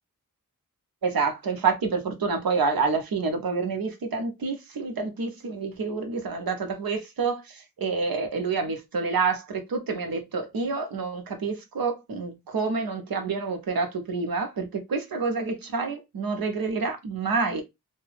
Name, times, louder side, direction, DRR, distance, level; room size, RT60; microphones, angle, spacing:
voice 1, 1.0-17.6, right 4 dB, 90° right, 0.8 m, -28 dB
2.8 x 2.2 x 3.3 m
wide cardioid pair, 65°, 34 cm